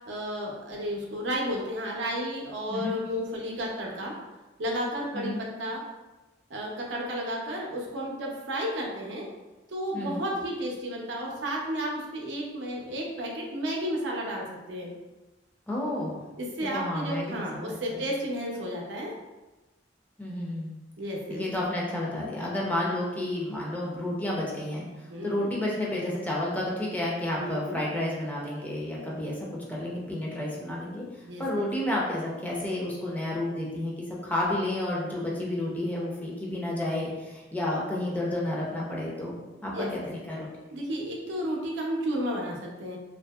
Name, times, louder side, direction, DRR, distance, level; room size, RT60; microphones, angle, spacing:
voice 1, 0.1-4.1 4.6-5.8 6.5-9.3 9.7-14.9 16.4-19.1 21.0-21.4 25.1-25.5 27.4-27.8 31.3-31.7 39.7-39.9 40.7-43.0, equal, 75° right, -2 dB, 0.6 m, -32 dB
voice 2, 9.9-10.2 15.7-16.2 16.7-18.0 20.2-20.8 21.3-29.4 29.7-40.6, left 1 dB, 10° left, -4 dB, 0.5 m, -31 dB
2.7 x 2.6 x 2.2 m, 1.1 s
head